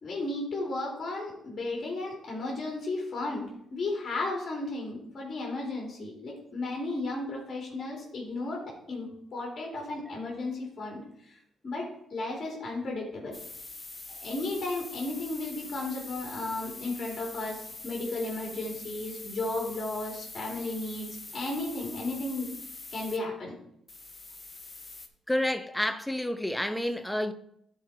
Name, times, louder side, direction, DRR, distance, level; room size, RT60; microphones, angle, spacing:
voice 1, 0.0-11.0 11.2-11.4 11.6-13.3 14.1-21.1 21.3-22.5 22.9-23.5, left 2 dB, 40° left, 2.6 m, -34 dB
sound 1, 13.3-23.2 23.9-25.1, left 3 dB, 20° left, 1.1 m, -44 dB
voice 2, 25.3-27.3, left 1 dB, 5° left, 0.6 m, -29 dB
11.5 x 4.6 x 4.6 m
cardioid pair, 90°, 0 cm